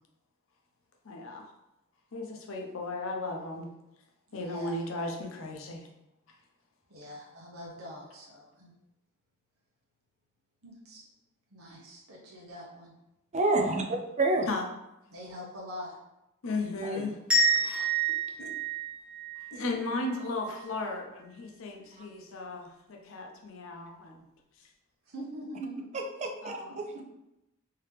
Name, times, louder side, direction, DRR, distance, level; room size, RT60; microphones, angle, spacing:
voice 1, 1.0-1.4 2.1-3.7 4.3-5.9 14.5-14.7 16.4-17.2 17.6-17.9 18.4-18.6 19.5-24.2 24.6-24.7 26.4-26.8, left 2 dB, 65° left, 2 dB, 0.6 m, -36 dB
voice 2, 4.3-4.8 6.9-8.7 10.6-11.1 11.5-12.9 15.1-16.0 25.1-25.9 26.7-27.0, equal, 75° right, -3 dB, 0.9 m, -43 dB
voice 3, 13.3-14.5 16.8-17.1 25.9-27.0, right 2 dB, 35° right, 3 dB, 0.4 m, -29 dB
sound 1, 17.3-20.1, right 3 dB, 5° right, 1.0 m, -28 dB
3.4 x 2.8 x 3.3 m, 0.90 s
head